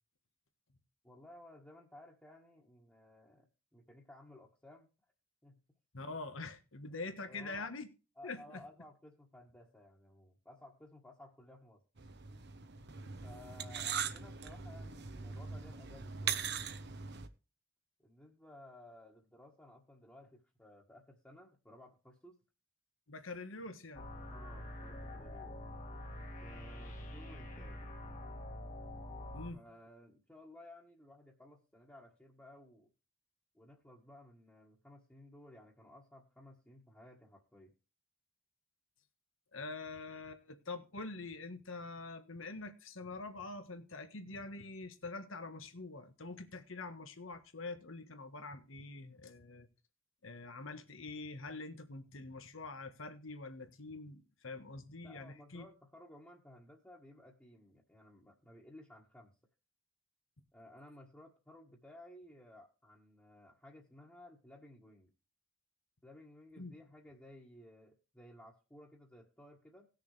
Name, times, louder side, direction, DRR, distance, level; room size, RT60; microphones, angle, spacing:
voice 1, 1.0-3.5 3.7-4.9 5.4-5.6 7.3-7.7 8.2-11.8 13.2-16.5 18.0-22.4 24.3-25.5 26.4-27.8 29.5-32.9 33.5-37.7 55.0-59.3 60.5-65.1 66.0-69.9, left 1 dB, 10° left, 1.6 m, -57 dB
voice 2, 5.9-7.9 8.2-8.6 23.1-24.1 29.3-29.6 39.5-49.7 50.2-55.6 66.6-66.7, left 3 dB, 85° left, 1.5 m, -45 dB
sound 1, 12.0-17.3, right 7 dB, 55° right, 1.0 m, -41 dB
sound 2, 23.9-29.5, left 1 dB, 40° left, 1.7 m, -46 dB
18.5 x 6.6 x 3.3 m
head